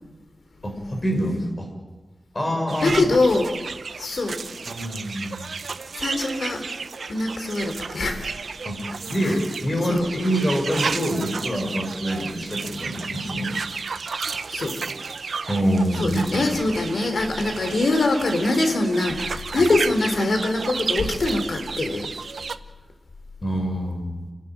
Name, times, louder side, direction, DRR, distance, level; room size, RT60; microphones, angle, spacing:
voice 1, 0.6-1.7 2.3-3.0 4.6-5.5 8.6-13.5 15.5-16.3 19.6-19.7 23.4-24.2, equal, 30° left, 2 dB, 6.8 m, -26 dB
sound 1, 2.7-22.6, right 5 dB, 80° right, 0.8 m, -32 dB
voice 2, 2.8-3.5 4.0-4.4 5.9-6.6 7.1-8.3 9.2-9.4 9.8-10.1 14.5-14.8 16.0-22.1, left 2 dB, 75° left, 6 dB, 4.0 m, -23 dB
30.0 x 12.5 x 9.2 m, 1.3 s
wide cardioid pair, 85°, 0 cm